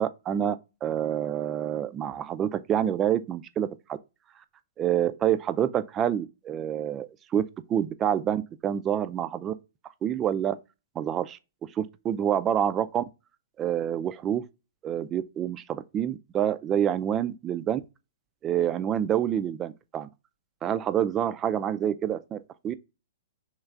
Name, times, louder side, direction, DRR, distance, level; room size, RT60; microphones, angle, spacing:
voice 1, 0.0-4.0 4.8-7.4 7.7-9.5 10.0-10.6 11.0-11.4 11.8-13.0 13.6-14.4 14.8-17.8 18.4-20.1 20.6-22.4 22.6-22.8, right 10 dB, 25° right, 0.3 m, -27 dB
3.3 x 3.1 x 3.5 m
figure-of-eight pair, 115°, 0 cm